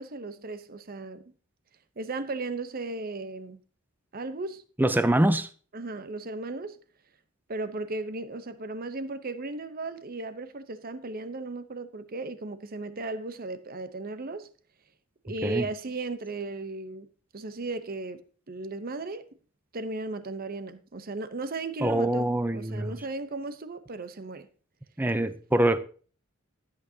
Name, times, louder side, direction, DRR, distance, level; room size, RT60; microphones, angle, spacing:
voice 1, 0.0-1.3 2.0-3.6 4.1-4.6 5.7-6.8 7.5-14.5 15.2-17.1 17.3-18.2 18.5-19.3 19.7-24.5, right 2 dB, 45° right, 0.8 m, -36 dB
voice 2, 4.8-5.5 15.4-15.7 21.8-23.0 25.0-25.8, right 1 dB, 10° right, 0.5 m, -24 dB
13.5 x 8.6 x 2.8 m
head